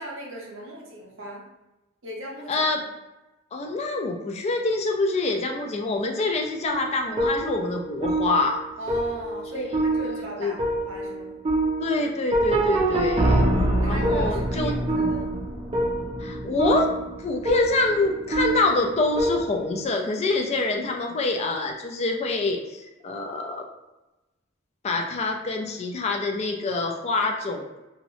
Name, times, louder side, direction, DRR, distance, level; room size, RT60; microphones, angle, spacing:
voice 1, 0.0-1.4 2.0-2.7 8.8-11.4 13.8-15.4, right 1 dB, 70° right, -2 dB, 0.7 m, -38 dB
voice 2, 2.5-2.8 3.5-8.6 9.5-9.7 10.4-10.5 11.8-13.5 13.8-14.7 16.2-16.9 17.2-23.6 24.8-27.7, left 2 dB, 35° left, 2 dB, 0.3 m, -26 dB
sound 1, 6.7-19.8, right 1 dB, 30° right, 0.4 m, -25 dB
2.8 x 2.0 x 2.7 m, 1.0 s
head